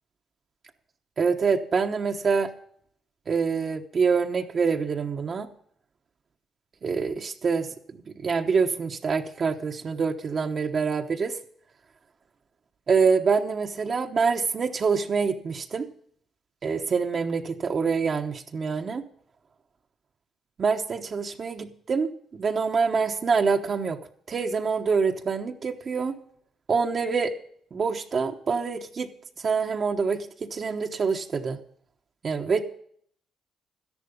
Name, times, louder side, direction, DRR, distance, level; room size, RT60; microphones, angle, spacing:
voice 1, 1.2-2.5 3.3-5.5 6.8-11.4 12.9-15.9 16.6-19.0 20.6-24.0 24.3-26.1 26.7-27.3 27.7-29.1 29.4-31.6 32.2-32.6, right 5 dB, 45° right, 3 dB, 1.0 m, -26 dB
12.5 x 11.0 x 5.3 m, 0.63 s
cardioid pair, 90°, 0 cm